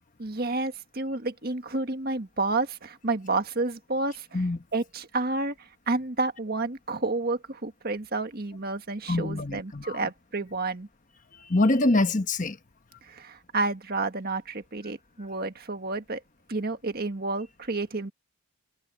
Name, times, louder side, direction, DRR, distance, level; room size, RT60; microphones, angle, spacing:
voice 1, 0.2-4.3 4.7-10.9 13.0-16.2 16.5-18.1, right 3 dB, 45° right, 1.7 m, -30 dB
voice 2, 9.1-10.1 11.3-12.6, left 2 dB, 35° left, 1.2 m, -25 dB
head